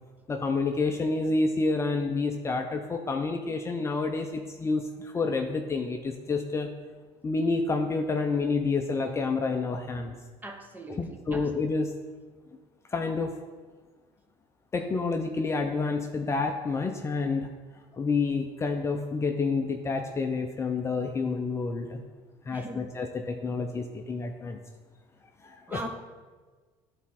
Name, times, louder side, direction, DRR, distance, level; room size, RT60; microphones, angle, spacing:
voice 1, 0.3-6.7 7.2-10.1 10.9-11.9 12.9-13.4 14.7-17.5 17.9-22.0 22.5-24.6 25.4-25.8, left 3 dB, 20° left, 4 dB, 0.5 m, -29 dB
voice 2, 10.4-11.0 11.3-11.4 22.5-22.8 25.7-25.9, right 1 dB, 15° right, 5 dB, 0.8 m, -39 dB
11.0 x 4.2 x 4.3 m, 1.4 s
cardioid pair, 120°, 12 cm